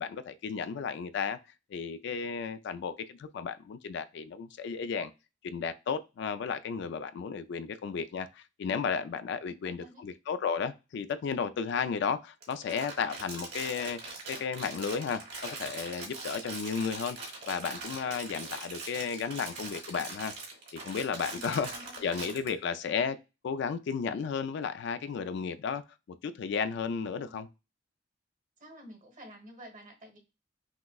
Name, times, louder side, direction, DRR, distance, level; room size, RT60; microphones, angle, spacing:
voice 1, 0.0-1.4 1.7-5.1 5.4-14.0 14.3-17.2 17.5-20.3 20.7-21.7 22.0-23.2 23.4-25.8 26.2-27.5, left 6 dB, 65° left, 0.3 m, -33 dB
voice 2, 9.4-10.1 21.3-22.1 27.1-27.5 28.6-30.2, equal, 45° right, 1.2 m, -50 dB
Crumpling crinkling, 12.4-22.5, right 3 dB, 60° right, 1.5 m, -42 dB
5.8 x 2.1 x 2.2 m
head